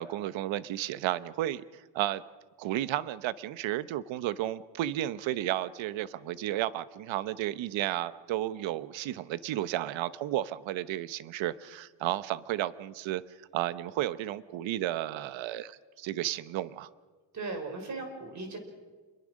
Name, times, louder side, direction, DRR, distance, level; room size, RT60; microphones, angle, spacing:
voice 1, 0.0-1.6 1.9-2.2 2.6-13.2 13.5-16.9, right 13 dB, 80° right, 15 dB, 1.0 m, -33 dB
voice 2, 17.3-18.6, right 3 dB, 40° right, 4 dB, 5.3 m, -37 dB
28.5 x 22.0 x 6.4 m, 1.4 s
cardioid pair, 140°, 45 cm